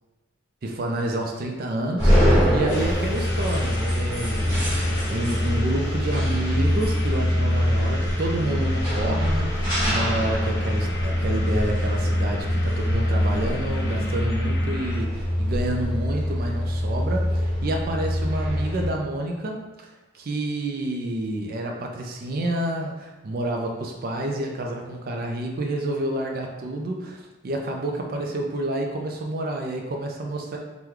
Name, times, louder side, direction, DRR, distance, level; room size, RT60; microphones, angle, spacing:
voice 1, 0.6-30.6, right 1 dB, 45° right, 1 dB, 0.4 m, -29 dB
sound 1, 2.0-18.9, equal, 20° left, 1.3 m, -24 dB
sound 2, 2.7-15.0, left 1 dB, 55° left, 0.6 m, -33 dB
3.0 x 2.2 x 3.6 m, 1.2 s
head